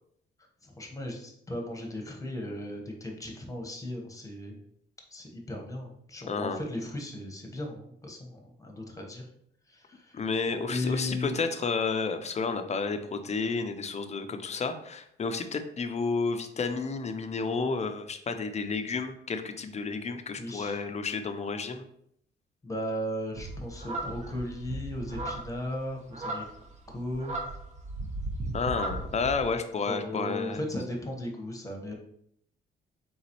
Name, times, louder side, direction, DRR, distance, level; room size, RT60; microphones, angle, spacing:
voice 1, 0.6-4.6 5.1-9.3 9.7-10.2 10.7-11.4 20.4-20.8 22.6-26.4 26.9-27.3 29.8-31.9, left 1 dB, 15° left, 2 dB, 1.0 m, -36 dB
voice 2, 6.3-6.6 10.1-21.8 28.5-30.6, left 4 dB, 35° left, 8 dB, 0.5 m, -31 dB
sound 1, 23.3-29.5, right 2 dB, 35° right, 0.9 m, -36 dB
3.9 x 3.8 x 3.0 m, 0.70 s
cardioid pair, 90°, 20 cm